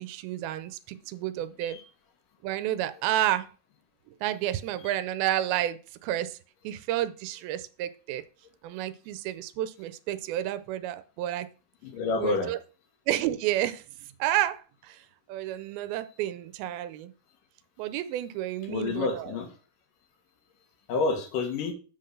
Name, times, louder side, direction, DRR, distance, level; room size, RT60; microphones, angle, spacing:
voice 1, 0.0-1.8 2.4-3.5 4.2-6.4 6.6-8.2 8.6-11.5 12.2-12.6 13.1-13.8 14.2-15.0 15.3-17.1 17.8-19.2, right 13 dB, 90° right, 12 dB, 2.5 m, -30 dB
voice 2, 11.8-12.5 18.6-19.6 20.9-21.7, left 3 dB, 70° left, 5 dB, 3.0 m, -29 dB
7.9 x 3.8 x 6.5 m, 0.36 s
omnidirectional pair, 4.2 m